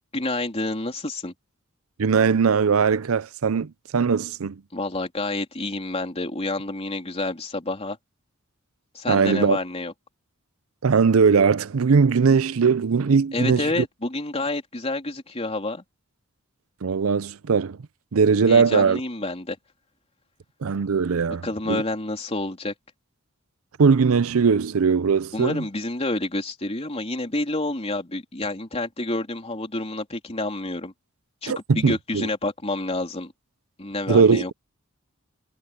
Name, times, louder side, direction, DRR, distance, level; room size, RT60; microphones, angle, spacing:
voice 1, 0.1-1.3 4.7-8.0 8.9-9.9 13.3-15.8 18.5-19.6 21.4-22.7 25.3-30.9 31.4-33.3 33.8-34.5, left 2 dB, 30° left, 3.6 m, -28 dB
voice 2, 2.0-4.6 9.1-9.6 10.8-13.8 16.8-17.8 18.1-19.0 20.6-21.8 23.8-25.6 31.5-32.3 34.1-34.5, right 5 dB, 85° right, 0.5 m, -20 dB
head